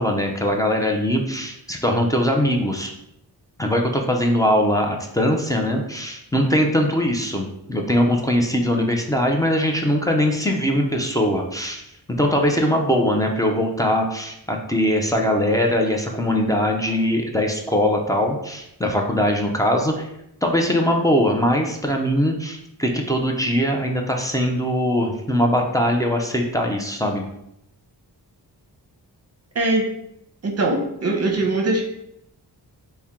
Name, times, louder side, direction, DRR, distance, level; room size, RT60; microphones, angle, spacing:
voice 1, 0.0-2.9 3.6-11.8 12.1-20.1 20.4-27.2, equal, 10° left, 1 dB, 0.4 m, -21 dB
voice 2, 30.4-31.8, right 2 dB, 40° right, 1 dB, 0.7 m, -21 dB
4.2 x 2.2 x 3.6 m, 0.79 s
wide cardioid pair, 130°, 40 cm